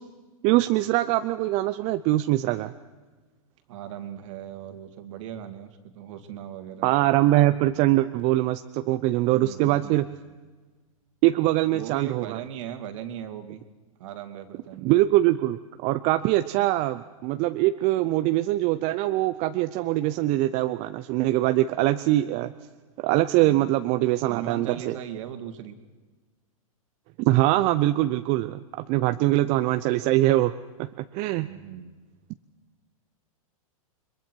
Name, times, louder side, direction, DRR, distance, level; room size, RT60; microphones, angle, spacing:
voice 1, 0.4-2.7 6.8-10.1 11.2-12.4 14.8-22.5 23.0-24.9 27.3-30.5 30.8-31.5, right 16 dB, 40° right, 10 dB, 0.7 m, -23 dB
voice 2, 3.7-6.9 9.3-10.0 11.7-13.6 14.0-15.0 16.6-16.7 24.3-25.8 31.4-31.9, right 10 dB, 60° right, 6 dB, 2.5 m, -38 dB
30.0 x 22.5 x 4.7 m, 1.3 s
hypercardioid pair, 115°, 18 cm